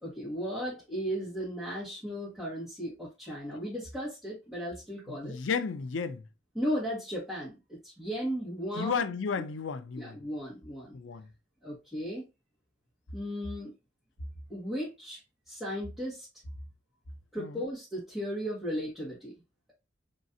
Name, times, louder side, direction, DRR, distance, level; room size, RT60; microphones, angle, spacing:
voice 1, 0.0-5.4 6.5-9.0 10.0-10.9 11.6-12.2 13.1-13.7 14.5-15.2 15.5-16.3 17.3-19.3, equal, ahead, 1.7 m, -35 dB
voice 2, 5.1-6.2 8.7-10.1 10.9-11.3 17.4-17.6, left 6 dB, 85° left, 0.5 m, -33 dB
3.8 x 3.1 x 2.7 m
head